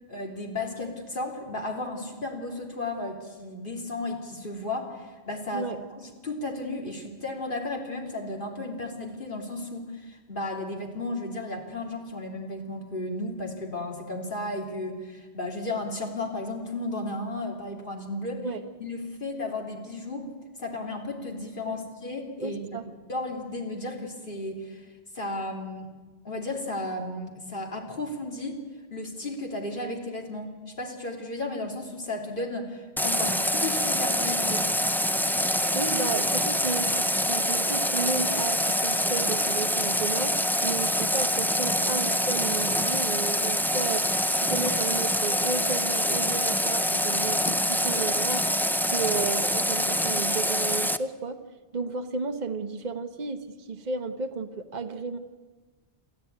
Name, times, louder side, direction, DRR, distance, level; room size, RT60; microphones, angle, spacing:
voice 1, 0.1-5.7 6.0-18.4 18.8-20.3 20.6-22.8 23.1-24.9 25.1-25.9 26.2-28.6 28.9-34.6, left 2 dB, 50° left, 1 dB, 3.3 m, -34 dB
voice 2, 22.4-22.8 35.5-40.4 40.6-44.0 44.3-48.5 48.9-51.4 51.7-55.2, right 4 dB, 40° right, 6 dB, 1.1 m, -33 dB
Water tap faucet, 33.0-51.0, equal, 5° left, 0.4 m, -25 dB
sound 1, 35.1-39.1, left 4 dB, 75° left, 1.7 m, -49 dB
29.5 x 13.0 x 9.5 m, 1.4 s
omnidirectional pair, 1.1 m